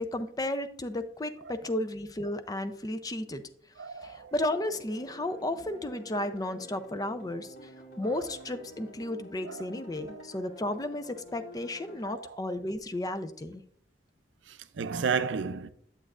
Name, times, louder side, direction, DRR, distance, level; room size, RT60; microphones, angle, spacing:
voice 1, 0.0-3.4 4.0-7.5 8.0-13.6, left 1 dB, 20° left, 0.5 m, -33 dB
voice 2, 3.8-4.3 8.0-8.2 9.4-9.7 10.1-10.2 12.0-12.4 14.5-15.7, right 5 dB, 85° right, 0.5 m, -33 dB
sound 1, 4.6-12.0, equal, 55° left, 2.4 m, -49 dB
8.6 x 7.8 x 2.4 m
head